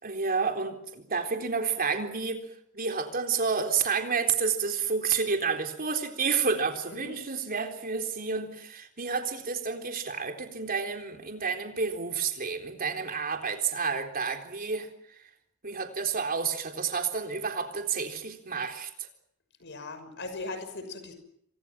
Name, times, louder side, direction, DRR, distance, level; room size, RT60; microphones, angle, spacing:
voice 1, 0.0-2.5 2.7-15.2 15.6-19.1, right 5 dB, 45° right, 5 dB, 3.9 m, -30 dB
voice 2, 19.6-21.1, left 3 dB, 55° left, 9 dB, 6.1 m, -39 dB
28.5 x 26.0 x 6.1 m, 0.73 s
head